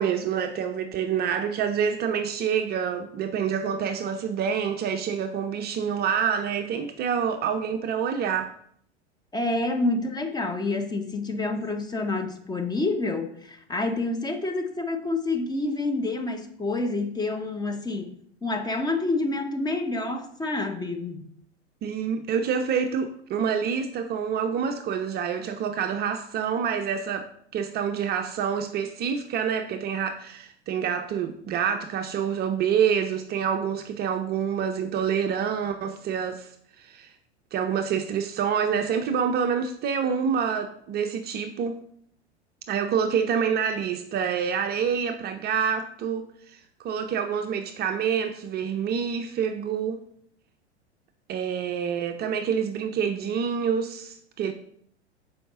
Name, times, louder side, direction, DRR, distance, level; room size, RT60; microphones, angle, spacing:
voice 1, 0.0-8.5 21.8-36.5 36.8-37.1 37.5-41.8 42.7-50.0 51.3-54.5, right 7 dB, 30° right, 6 dB, 0.5 m, -27 dB
voice 2, 9.3-21.2, left 2 dB, 10° left, 5 dB, 0.7 m, -28 dB
6.8 x 4.8 x 3.6 m, 0.64 s
hypercardioid pair, 95°, 34 cm